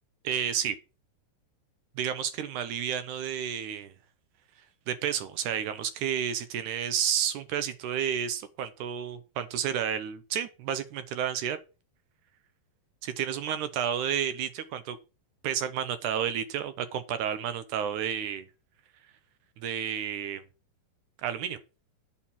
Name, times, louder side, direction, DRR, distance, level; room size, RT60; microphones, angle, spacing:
voice 1, 0.2-0.8 2.0-3.9 4.9-11.6 13.0-15.0 15.4-18.5 19.6-20.4 21.2-21.6, right 9 dB, 75° right, 1.9 m, -31 dB
8.6 x 4.4 x 7.2 m
omnidirectional pair, 4.2 m